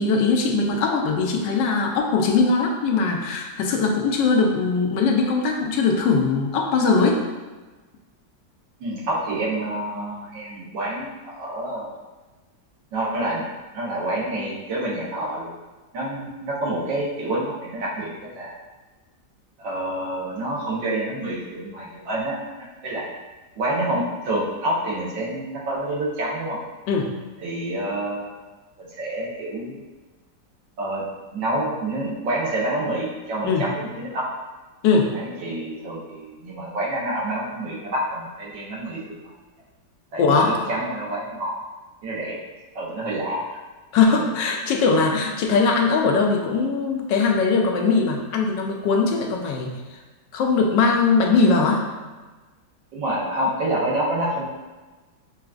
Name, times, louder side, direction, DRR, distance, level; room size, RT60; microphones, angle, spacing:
voice 1, 0.0-7.2 26.9-27.1 33.4-33.6 34.8-35.1 40.2-40.6 43.9-49.8 50.3-51.8, left 4 dB, 80° left, 1 dB, 1.2 m, -20 dB
voice 2, 8.8-12.0 12.9-13.5 13.7-15.5 15.9-18.6 19.6-23.0 23.5-26.6 27.4-28.4 28.8-29.8 30.8-31.0 31.3-34.3 35.1-39.1 40.1-41.5 42.0-42.4 42.7-43.6 52.9-54.4, right 1 dB, 80° right, -5 dB, 1.6 m, -28 dB
5.7 x 2.4 x 2.3 m, 1.2 s
omnidirectional pair, 2.0 m